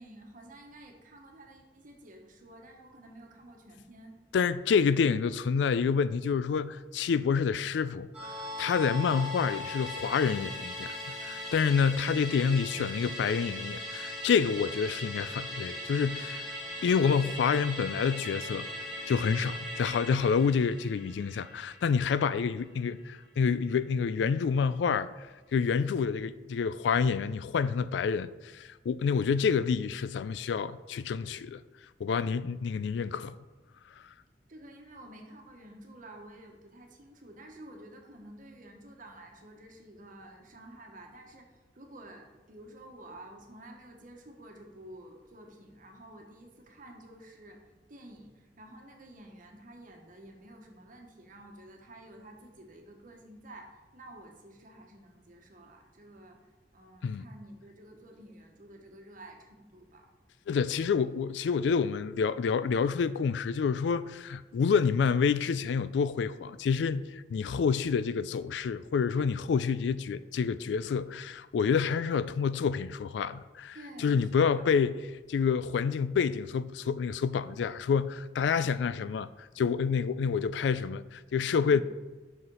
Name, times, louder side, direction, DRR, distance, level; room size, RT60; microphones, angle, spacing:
voice 1, 0.0-4.2 12.0-12.3 34.5-56.4 56.7-60.1 73.7-74.7, right 1 dB, 50° right, 1.2 m, -51 dB
voice 2, 4.3-8.3 8.6-16.5 16.8-18.7 19.1-25.1 25.5-31.6 32.0-33.4 57.0-57.3 60.5-75.0 75.3-81.8, left 6 dB, 75° left, 0.3 m, -28 dB
Musical instrument, 8.1-22.8 23.1-23.2, left 1 dB, 5° right, 2.2 m, -39 dB
5.9 x 5.6 x 5.4 m
head